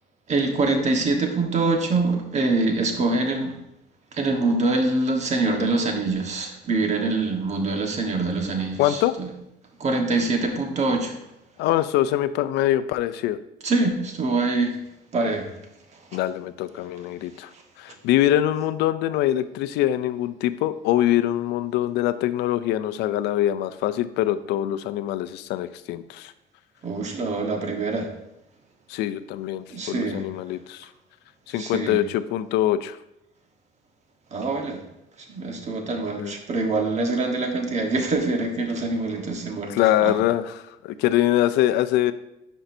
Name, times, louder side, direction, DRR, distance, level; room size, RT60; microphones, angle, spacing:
voice 1, 0.3-3.5 4.1-9.3 9.8-11.1 13.6-14.8 15.1-15.5 26.8-28.1 29.7-30.2 31.6-32.0 34.3-34.8 35.3-39.7 40.0-40.1, right 3 dB, 40° right, 3 dB, 1.3 m, -24 dB
voice 2, 8.8-9.1 11.6-13.4 16.1-17.5 17.8-26.3 28.9-30.9 31.5-33.0 36.2-36.3 39.7-42.1, left 13 dB, 85° left, 13 dB, 0.4 m, -23 dB
10.0 x 5.4 x 2.6 m, 0.88 s
cardioid pair, 110°, 17 cm